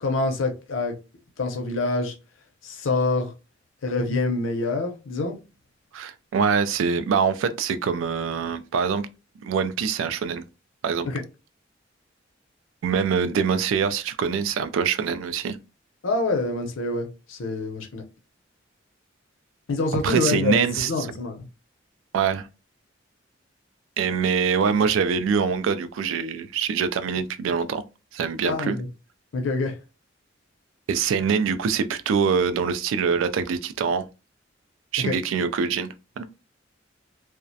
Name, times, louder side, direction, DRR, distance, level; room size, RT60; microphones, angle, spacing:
voice 1, 0.0-1.0 1.4-2.1 2.6-3.3 3.8-5.4 11.0-11.2 16.0-18.0 19.7-21.4 28.4-28.9 29.3-29.7 35.0-35.1, left 3 dB, 80° left, 0.6 m, -26 dB
voice 2, 5.9-9.1 9.4-10.4 10.8-11.1 12.8-15.6 19.9-20.9 22.1-22.5 24.0-27.8 28.1-28.8 30.9-34.1 34.9-36.3, right 6 dB, 80° right, 0.3 m, -24 dB
2.3 x 2.1 x 2.6 m
head